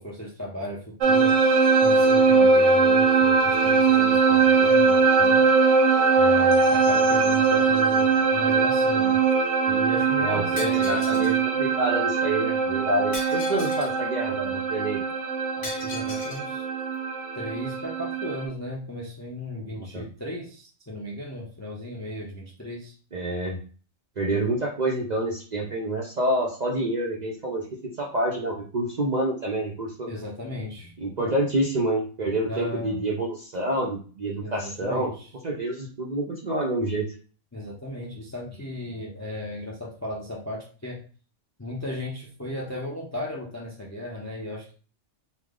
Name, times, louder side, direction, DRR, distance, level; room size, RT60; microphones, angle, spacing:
voice 1, 0.0-1.4 1.8-5.4 6.2-9.2 9.7-11.4 15.6-16.7 17.4-22.9 30.1-30.9 31.2-31.4 32.4-33.1 34.4-35.3 37.5-41.0 41.6-44.7, left 1 dB, 25° left, -2 dB, 0.4 m, -36 dB
sound 1, 1.0-18.5, right 4 dB, 75° right, 1.0 m, -21 dB
voice 2, 10.2-15.0 19.7-20.0 23.1-23.6 24.2-27.6 28.0-30.1 31.0-35.1 35.4-37.1, right 1 dB, 50° right, -1 dB, 0.5 m, -27 dB
Shatter, 10.6-11.4 13.1-14.0 15.6-16.4, left 3 dB, 75° left, 1.3 m, -38 dB
3.3 x 2.0 x 3.6 m, 0.39 s
omnidirectional pair, 1.3 m